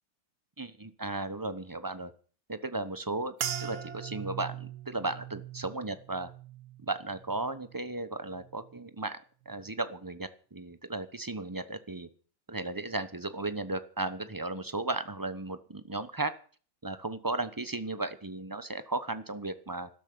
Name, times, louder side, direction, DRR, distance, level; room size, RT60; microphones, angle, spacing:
voice 1, 0.6-2.1 2.5-3.3 3.6-6.3 6.8-9.2 9.4-12.1 12.5-16.3 16.8-19.9, right 2 dB, 20° right, 12 dB, 0.5 m, -35 dB
sound 1, 3.4-7.9 8.3-8.9 9.5-9.7, right 10 dB, 60° right, 1.5 m, -41 dB
13.0 x 13.0 x 6.9 m, 0.41 s
omnidirectional pair, 2.1 m